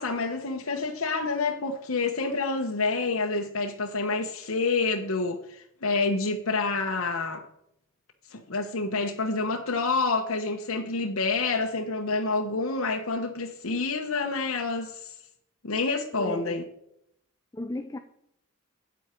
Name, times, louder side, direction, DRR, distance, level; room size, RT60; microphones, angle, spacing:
voice 1, 0.0-7.4 8.3-15.1 15.6-16.6, left 3 dB, 80° left, 0.9 m, -28 dB
voice 2, 16.1-16.6 17.5-18.0, left 1 dB, 15° left, 0.5 m, -35 dB
8.8 x 8.1 x 4.4 m
head